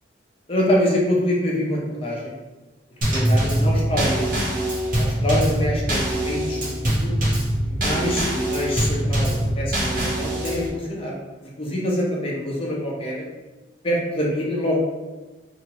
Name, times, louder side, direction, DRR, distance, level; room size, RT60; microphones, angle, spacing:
voice 1, 0.5-2.3 3.1-4.2 5.0-7.1 7.7-11.2 11.6-13.2 13.8-14.8, equal, 30° left, -4 dB, 0.7 m, -25 dB
Drum kit / Snare drum / Bass drum, 3.0-10.7, right 1 dB, 50° right, 1.1 m, -23 dB
2.9 x 2.8 x 2.9 m, 1.2 s
head